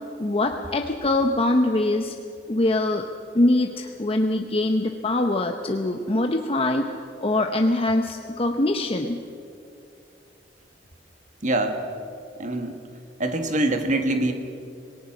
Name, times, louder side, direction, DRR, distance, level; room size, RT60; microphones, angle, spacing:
voice 1, 0.2-2.1 2.5-3.1 3.3-6.9 7.2-9.2, left 2 dB, 30° left, 4 dB, 0.8 m, -23 dB
voice 2, 11.4-11.8 12.4-12.8 13.2-14.3, right 1 dB, 45° right, 6 dB, 1.9 m, -24 dB
26.5 x 18.0 x 6.1 m, 2.5 s
head